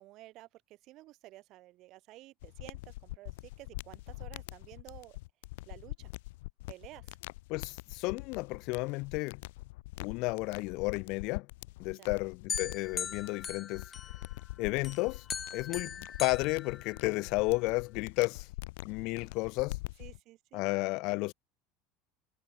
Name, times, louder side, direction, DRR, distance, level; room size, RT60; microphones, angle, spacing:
voice 1, 0.0-5.2 5.7-6.1 6.7-7.2 11.9-12.2 20.0-20.7, right 17 dB, 50° right, 7.5 m, -52 dB
sound 1, 2.4-20.2, left 21 dB, 80° left, 7.3 m, -44 dB
voice 2, 7.5-9.4 10.0-11.5 11.8-13.8 14.6-15.2 15.5-18.5 18.8-19.8 20.5-21.3, left 25 dB, 60° left, 0.4 m, -32 dB
sound 2, 12.5-14.4 14.8-17.4, left 7 dB, 25° left, 4.1 m, -40 dB
supercardioid pair, 135°, 0 cm